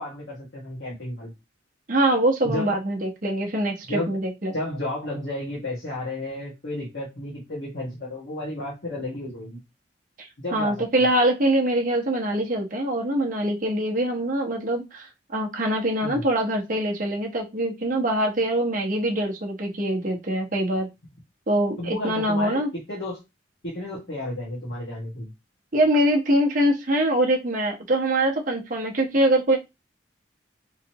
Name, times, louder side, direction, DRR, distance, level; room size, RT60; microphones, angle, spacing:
voice 1, 0.0-1.3 2.4-2.7 3.9-4.2 4.5-9.6 10.4-10.8 16.0-16.2 21.8-23.2 23.6-25.3, left 1 dB, 70° left, -5 dB, 1.7 m, -32 dB
voice 2, 1.9-4.5 10.2-20.9 21.5-22.7 25.7-29.6, right 1 dB, 45° right, 1 dB, 0.9 m, -23 dB
3.8 x 3.2 x 2.9 m, 0.23 s
head